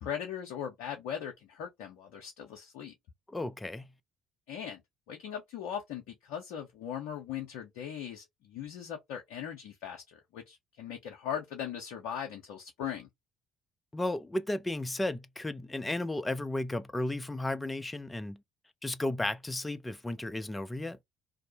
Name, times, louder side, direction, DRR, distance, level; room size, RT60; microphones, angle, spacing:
voice 1, 0.0-2.9 4.5-4.8 5.1-13.1, left 8 dB, 65° left, 0.5 m, -39 dB
voice 2, 3.3-3.9 13.9-18.4 18.8-21.0, left 1 dB, 15° left, 0.4 m, -34 dB
2.6 x 2.0 x 2.7 m
figure-of-eight pair, 50°, 0 cm